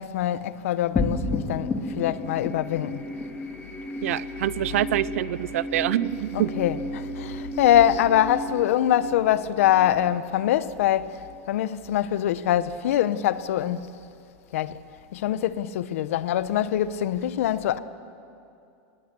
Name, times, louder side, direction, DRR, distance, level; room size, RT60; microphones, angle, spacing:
voice 1, 0.0-1.7 2.0-3.0 4.7-4.8 6.3-11.2 11.5-13.9 14.5-14.8 15.1-17.8, left 11 dB, 80° left, 0.9 m, -24 dB
sound 1, 0.9-11.6, left 1 dB, 10° left, 2.2 m, -33 dB
voice 2, 4.0-6.5, right 13 dB, 80° right, 0.6 m, -26 dB
25.0 x 20.0 x 6.9 m
supercardioid pair, 165°, 7 cm